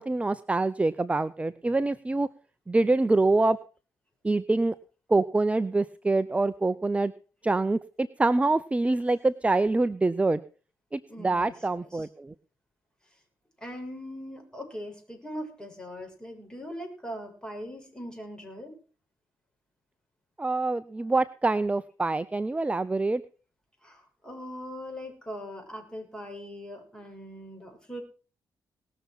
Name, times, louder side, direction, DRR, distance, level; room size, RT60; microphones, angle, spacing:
voice 1, 0.0-2.3 2.7-3.6 4.2-4.7 5.1-7.1 7.4-10.4 10.9-12.3 20.4-23.2, right 2 dB, 15° right, 15 dB, 0.6 m, -25 dB
voice 2, 11.1-12.1 13.6-18.7 23.8-28.0, equal, 10° left, 3 dB, 6.5 m, -40 dB
19.5 x 6.9 x 6.0 m, 0.39 s
cardioid pair, 70°, 7 cm